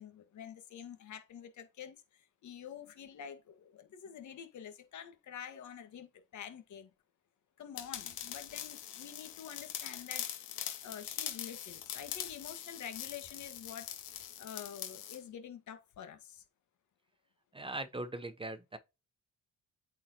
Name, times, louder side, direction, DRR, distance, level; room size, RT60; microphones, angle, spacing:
voice 1, 0.0-6.9 7.6-10.3 10.8-13.9 14.4-16.4, left 8 dB, 70° left, 1.7 m, -48 dB
sound 1, 7.8-15.2, left 10 dB, 90° left, 1.6 m, -42 dB
voice 2, 17.5-18.8, right 2 dB, 15° right, 0.8 m, -40 dB
8.4 x 4.6 x 2.9 m
cardioid pair, 90°, 30 cm